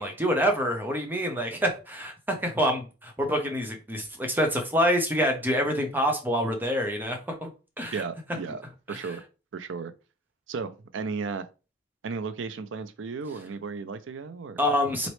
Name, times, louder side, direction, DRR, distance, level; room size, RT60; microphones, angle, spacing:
voice 1, 0.0-7.5 7.8-8.0 8.9-9.0 14.6-15.1, equal, 10° right, 0.7 m, -26 dB
voice 2, 7.9-8.6 8.9-9.2 9.5-9.9 10.5-11.5 12.0-14.6, right 5 dB, 90° right, 0.4 m, -34 dB
4.0 x 3.0 x 3.1 m
head